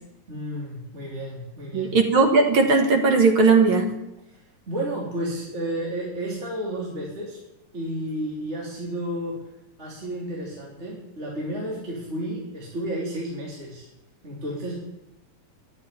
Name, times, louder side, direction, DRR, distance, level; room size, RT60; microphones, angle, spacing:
voice 1, 0.3-1.9 4.3-4.4 4.7-7.4 7.7-9.4 9.8-13.9 14.2-14.7, right 1 dB, 20° right, -4 dB, 3.1 m, -32 dB
voice 2, 1.7-4.0, right 4 dB, 50° right, 4 dB, 1.6 m, -18 dB
11.0 x 8.5 x 9.7 m, 0.92 s
omnidirectional pair, 3.8 m